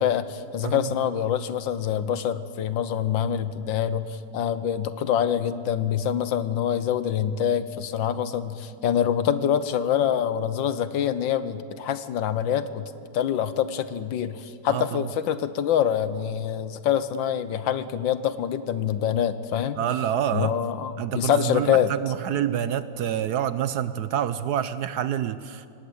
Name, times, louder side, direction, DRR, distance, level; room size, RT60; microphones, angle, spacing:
voice 1, 0.0-12.8 13.1-19.8 20.3-21.9, left 9 dB, 80° left, 13 dB, 1.7 m, -25 dB
voice 2, 14.7-15.1 19.8-20.6 21.0-25.7, right 10 dB, 65° right, 13 dB, 1.1 m, -27 dB
25.5 x 18.5 x 8.2 m, 2.6 s
omnidirectional pair, 2.1 m